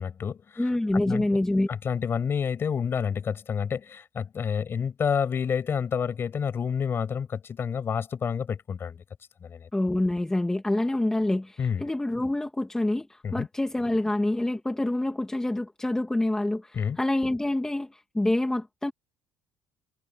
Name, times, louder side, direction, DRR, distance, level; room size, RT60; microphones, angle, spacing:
voice 1, 0.0-0.6 0.9-1.4 1.7-9.0 9.4-9.7 11.6-11.8 13.2-13.5 16.7-17.0, left 7 dB, 40° left, 6.2 m, -29 dB
voice 2, 0.6-1.7 9.7-18.9, left 1 dB, 10° left, 2.0 m, -27 dB
supercardioid pair, 95°, 6 cm